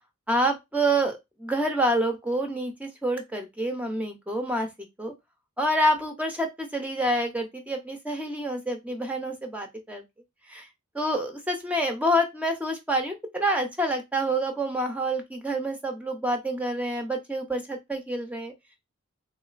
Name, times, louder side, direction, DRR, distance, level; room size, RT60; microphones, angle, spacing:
voice 1, 0.3-4.7 5.0-5.1 5.6-10.0 10.5-10.7 10.9-18.5, right 1 dB, 5° right, 4 dB, 0.5 m, -27 dB
3.5 x 3.0 x 2.4 m, 0.20 s
head